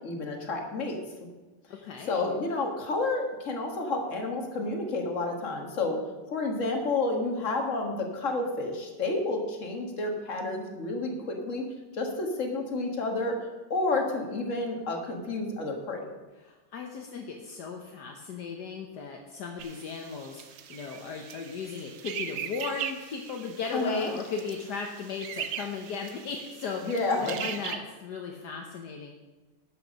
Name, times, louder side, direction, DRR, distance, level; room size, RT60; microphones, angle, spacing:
voice 1, 0.0-1.0 2.1-6.0 6.3-11.6 11.9-13.4 13.7-16.1 23.7-24.1 26.8-27.5, left 2 dB, 45° left, 2 dB, 1.9 m, -30 dB
voice 2, 1.7-2.2 16.4-26.8 27.2-29.1, left 5 dB, 70° left, 2 dB, 1.5 m, -36 dB
sound 1, 19.6-27.8, right 9 dB, 90° right, 1.5 m, -40 dB
11.5 x 8.2 x 5.2 m, 1.2 s
omnidirectional pair, 1.9 m